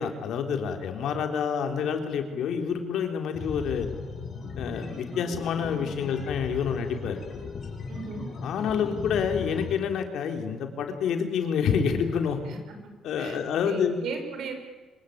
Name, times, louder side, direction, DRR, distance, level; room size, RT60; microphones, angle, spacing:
voice 1, 0.0-3.9 4.6-7.2 8.4-12.4 13.0-14.0, left 7 dB, 75° left, 5 dB, 3.9 m, -28 dB
sound 1, 3.3-9.8, left 5 dB, 55° left, 7.4 m, -37 dB
voice 2, 7.9-8.2 12.5-12.8 13.2-14.5, right 4 dB, 75° right, 5 dB, 6.1 m, -36 dB
26.0 x 23.5 x 8.9 m, 1.3 s
cardioid pair, 90°, 0 cm